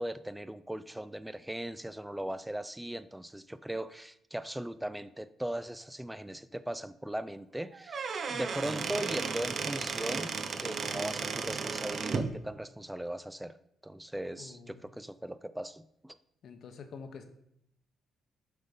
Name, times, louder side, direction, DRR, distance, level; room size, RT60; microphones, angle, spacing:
voice 1, 0.0-13.6 13.8-16.2, right 1 dB, 5° right, 13 dB, 0.3 m, -39 dB
Squeak / Wood, 7.7-12.3, right 5 dB, 50° right, 0.7 m, -34 dB
voice 2, 14.3-14.9 16.4-17.2, left 5 dB, 65° left, 8 dB, 0.9 m, -47 dB
7.8 x 3.6 x 5.2 m, 0.77 s
cardioid pair, 90°, 0 cm